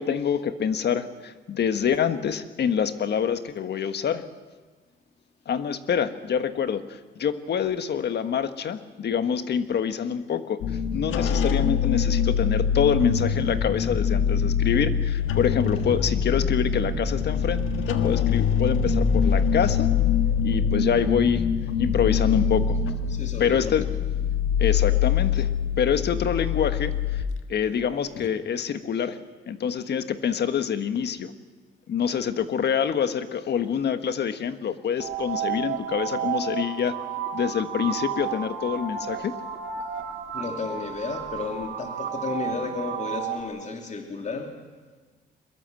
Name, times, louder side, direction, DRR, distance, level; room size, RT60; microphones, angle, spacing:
voice 1, 0.0-4.3 5.5-10.6 10.9-19.9 20.4-21.4 21.8-22.8 23.4-23.8 24.6-25.5 25.8-27.2 27.5-29.2 29.5-31.3 31.9-37.0 37.3-39.3, left 7 dB, 60° left, 10 dB, 1.5 m, -26 dB
sound 1, 10.6-27.2 27.7-27.8 28.2-28.3, left 7 dB, 85° left, 1.6 m, -24 dB
voice 2, 23.1-23.8 40.3-44.6, left 4 dB, 35° left, 4 dB, 3.1 m, -33 dB
sound 2, 35.0-43.4, right 8 dB, 70° right, 3.3 m, -32 dB
23.0 x 21.5 x 7.7 m, 1.4 s
cardioid pair, 90°, 20 cm